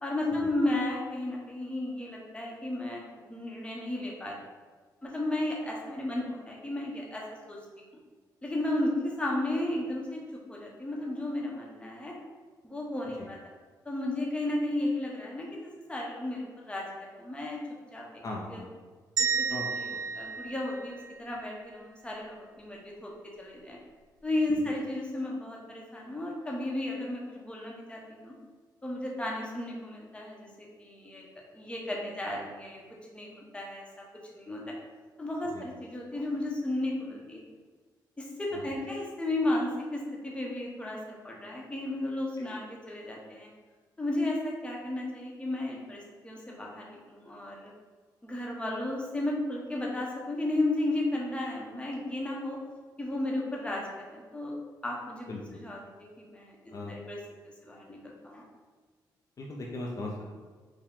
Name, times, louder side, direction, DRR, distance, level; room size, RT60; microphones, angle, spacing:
voice 1, 0.0-3.0 3.3-4.4 5.0-7.9 8.4-10.2 10.5-12.2 12.6-13.4 13.8-17.6 17.9-18.0 18.5-18.6 19.2-19.9 20.1-23.1 23.4-23.8 24.2-28.3 28.8-31.2 31.5-32.8 33.1-34.0 34.3-34.6 35.2-37.4 38.2-43.5 44.0-47.7 48.2-52.6 53.0-54.5 54.8-55.3 55.6-55.8 56.2-57.2 57.4-58.4, left 1 dB, 15° left, -2 dB, 0.9 m, -34 dB
voice 2, 18.2-18.7 19.5-20.0 35.5-35.7 38.5-38.7 42.4-42.5 55.3-55.4 56.7-56.9 59.4-60.3, left 2 dB, 45° left, -2 dB, 0.6 m, -39 dB
sound 1, 19.2-21.4, right 6 dB, 55° right, 0.6 m, -32 dB
4.6 x 2.2 x 3.6 m, 1.4 s
cardioid pair, 95°, 8 cm